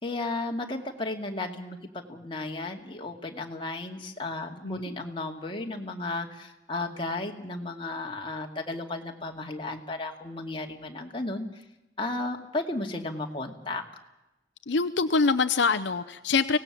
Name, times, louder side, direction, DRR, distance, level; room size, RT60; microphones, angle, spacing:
voice 1, 0.0-11.6 12.0-13.8, left 2 dB, 25° left, 1 dB, 2.3 m, -34 dB
voice 2, 4.6-5.0 14.7-16.6, left 4 dB, 70° left, 11 dB, 0.7 m, -25 dB
24.5 x 18.0 x 7.4 m, 0.96 s
head